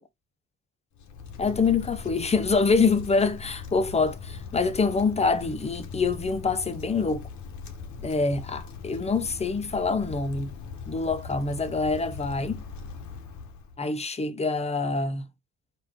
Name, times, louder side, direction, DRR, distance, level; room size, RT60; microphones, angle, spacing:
Wind, 0.9-13.8, left 5 dB, 75° left, 1.0 m, -40 dB
voice 1, 1.4-7.3 8.0-10.5 10.9-12.6 13.8-15.3, left 4 dB, 20° left, 0.6 m, -25 dB
4.8 x 2.5 x 3.6 m
cardioid pair, 90°, 30 cm